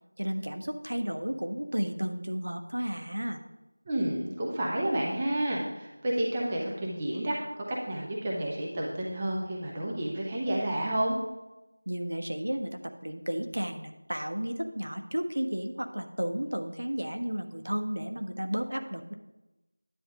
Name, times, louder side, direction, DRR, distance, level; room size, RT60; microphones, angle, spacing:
voice 1, 0.2-3.4 11.9-19.1, equal, 80° right, 6 dB, 1.2 m, -33 dB
voice 2, 3.9-11.2, right 1 dB, 10° right, -3 dB, 0.6 m, -30 dB
10.0 x 8.9 x 3.6 m, 1.0 s
figure-of-eight pair, 180°, 0 cm